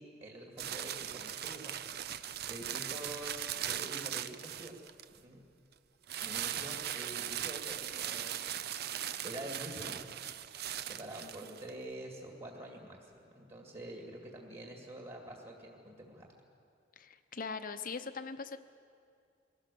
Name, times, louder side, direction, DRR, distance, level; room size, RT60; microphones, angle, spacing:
voice 1, 0.0-1.8 2.2-4.8 5.2-5.4 6.2-10.2 10.8-16.3, right 1 dB, 35° right, 0 dB, 2.2 m, -47 dB
sound 1, 0.6-5.2 6.1-11.7, right 10 dB, 60° right, 0.6 m, -39 dB
voice 2, 17.0-18.6, left 5 dB, 50° left, 9 dB, 0.8 m, -41 dB
22.5 x 17.5 x 6.9 m, 2.4 s
head